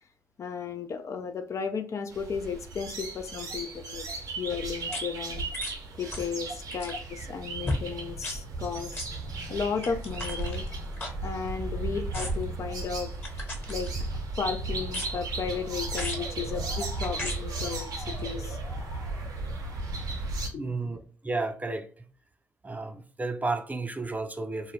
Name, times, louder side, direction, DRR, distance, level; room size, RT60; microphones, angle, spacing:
voice 1, 0.4-4.1 4.4-9.0 9.5-10.6 11.2-13.9 14.4-18.6 20.5-20.8, left 6 dB, 50° left, 0.4 m, -34 dB
sound 1, 2.1-20.5, right 3 dB, 70° right, 0.6 m, -35 dB
sound 2, 4.9-5.0 5.5-5.8 6.1-6.3 6.6-7.0 7.6-7.8 8.2-8.4 8.9-9.1 9.8-11.7 12.1-12.5 13.2-14.2 14.9-15.3 15.9-16.3 17.0-17.4 18.2-18.3, left 1 dB, 30° left, 1.2 m, -36 dB
Motor vehicle (road) / Siren, 14.4-20.3, left 1 dB, 75° left, 1.0 m, -47 dB
voice 2, 20.6-22.0 22.6-24.7, right 3 dB, 25° right, 0.4 m, -33 dB
2.2 x 2.0 x 3.2 m
hypercardioid pair, 45°, 7 cm